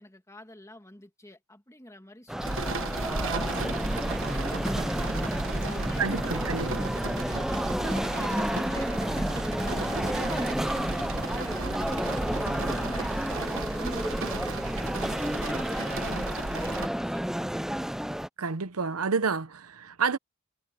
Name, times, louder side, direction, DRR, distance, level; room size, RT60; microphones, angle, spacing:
voice 1, 0.0-5.2 5.6-14.7 15.1-17.4, left 1 dB, 15° left, 2.2 m, -49 dB
sound 1, 2.3-18.3, equal, ahead, 0.5 m, -31 dB
sound 2, 2.4-16.9, right 3 dB, 60° right, 1.3 m, -34 dB
voice 2, 6.0-6.9 18.4-20.2, right 5 dB, 80° right, 0.9 m, -29 dB
sound 3, 6.5-11.1, left 7 dB, 60° left, 6.9 m, -60 dB
head